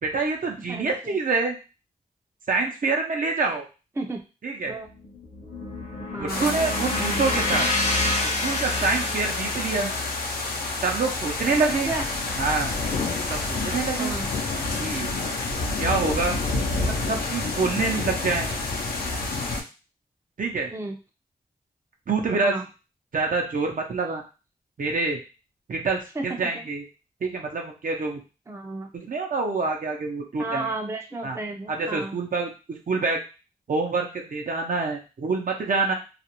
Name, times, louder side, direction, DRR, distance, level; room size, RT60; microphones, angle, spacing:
voice 1, 0.0-1.6 2.5-3.6 4.4-4.8 6.2-7.6 8.4-9.9 10.8-11.9 12.4-12.7 13.3-14.1 14.8-15.1 15.8-16.4 16.8-18.5 20.4-20.7 22.1-22.6 23.1-24.2 24.8-25.2 25.7-26.9 27.2-28.2 28.9-30.7 31.2-31.4 31.7-33.2 33.7-35.9, right 4 dB, 60° right, 2 dB, 0.6 m, -26 dB
voice 2, 0.7-1.2 4.0-4.2 4.7-4.9 6.1-6.6 9.7-9.9 11.5-12.0 14.0-14.3 17.0-17.2 20.7-21.0 22.4-22.6 26.2-26.5 28.5-28.9 30.4-32.2, right 2 dB, 15° right, 2 dB, 0.5 m, -33 dB
sound 1, 4.8-13.1, left 2 dB, 45° left, 0.7 m, -30 dB
sound 2, 6.3-19.6, left 3 dB, 80° left, 0.6 m, -29 dB
2.4 x 2.0 x 2.9 m, 0.31 s
cardioid pair, 50°, 16 cm